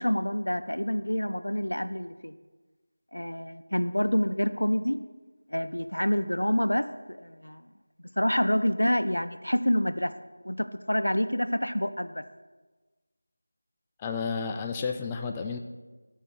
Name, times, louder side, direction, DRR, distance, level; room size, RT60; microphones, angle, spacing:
voice 1, 0.0-2.3 3.1-5.0 5.5-7.7 8.0-10.1 10.4-12.2, equal, 85° left, 11 dB, 0.5 m, -27 dB
voice 2, 14.0-15.6, left 5 dB, 10° left, 4 dB, 0.3 m, -31 dB
11.0 x 4.5 x 4.5 m, 1.3 s
figure-of-eight pair, 170°, 0 cm